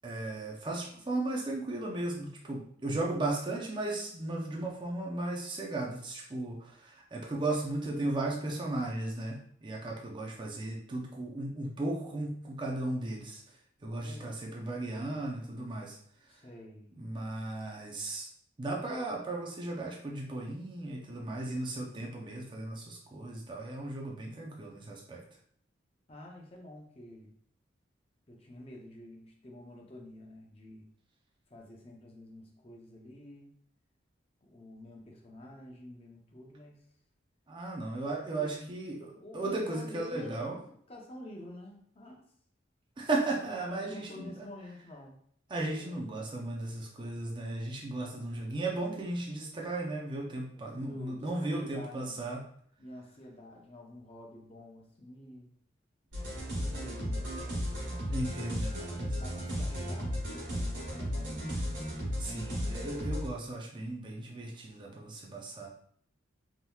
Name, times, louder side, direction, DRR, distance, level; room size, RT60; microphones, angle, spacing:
voice 1, 0.0-13.4 13.8-16.0 17.0-18.3 18.6-25.2 37.5-40.6 43.0-44.5 45.5-52.4 58.1-59.2 62.2-65.7, right 2 dB, 25° right, -1 dB, 0.4 m, -36 dB
voice 2, 13.9-14.3 16.3-16.9 26.1-27.3 28.3-30.9 31.5-33.5 34.4-36.8 38.3-38.7 39.1-40.6 40.9-42.2 43.6-45.2 45.6-46.0 48.1-48.9 50.8-52.3 52.8-55.5 56.5-57.9 59.1-61.5, left 1 dB, 30° left, 0 dB, 0.6 m, -49 dB
sound 1, 56.1-63.3, equal, 85° right, 1.5 m, -35 dB
3.5 x 2.8 x 2.3 m, 0.63 s
head